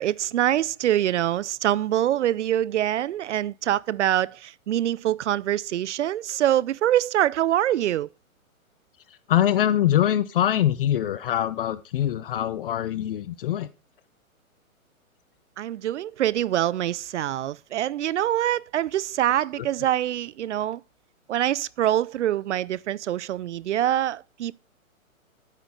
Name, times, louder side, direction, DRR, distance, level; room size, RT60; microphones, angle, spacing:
voice 1, 0.0-8.1 15.6-20.8 21.3-24.5, right 12 dB, 55° right, 0.5 m, -24 dB
voice 2, 9.3-13.7 19.6-19.7, left 11 dB, 40° left, 0.7 m, -23 dB
9.4 x 9.1 x 3.5 m
hypercardioid pair, 145°, 42 cm